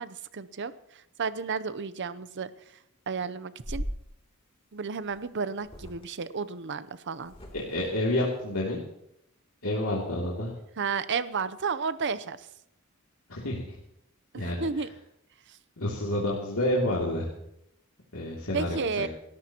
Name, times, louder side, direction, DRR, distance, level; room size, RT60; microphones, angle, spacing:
voice 1, 0.0-2.5 3.1-3.8 4.7-7.3 10.8-12.5 14.3-14.9 15.5-15.6 18.5-19.1, right 5 dB, 55° right, 14 dB, 0.7 m, -32 dB
sound 1, 3.6-4.0 5.1-5.2 5.6-6.1 7.2-7.9, equal, 25° left, 2.9 m, -38 dB
voice 2, 7.5-8.8 9.6-10.5 13.3-13.6 14.3-14.6 15.8-17.3 18.1-19.1, left 1 dB, 75° left, -5 dB, 2.8 m, -29 dB
28.0 x 14.0 x 3.0 m, 0.78 s
head